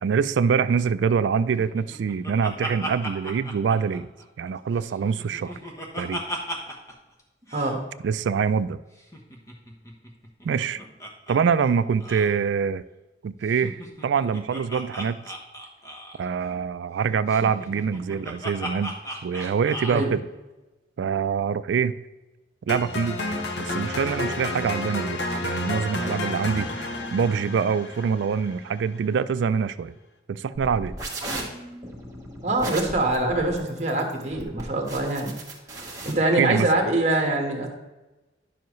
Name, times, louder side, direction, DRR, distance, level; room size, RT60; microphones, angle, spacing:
voice 1, 0.0-4.1 4.4-5.6 5.9-6.2 8.0-8.8 10.4-10.8 11.3-12.8 13.2-15.2 16.2-18.9 19.2-20.2 21.0-22.0 22.7-23.2 23.6-29.9 30.3-30.9 36.4-36.7, right 6 dB, 75° right, 14 dB, 0.3 m, -25 dB
Laughter, 1.6-4.5 4.8-6.9 7.2-7.3 7.5-7.7 9.0-11.4 11.6-11.7 12.0-12.3 13.5-16.3 17.3-20.1, equal, 15° left, 1.1 m, -36 dB
sound 1, 22.7-28.8, left 2 dB, 70° left, 1.0 m, -31 dB
sound 2, 30.5-36.1, right 2 dB, 20° right, 1.6 m, -36 dB
voice 2, 32.4-35.3 36.0-37.7, right 2 dB, 40° right, 2 dB, 1.4 m, -24 dB
10.5 x 7.0 x 3.1 m, 1.1 s
head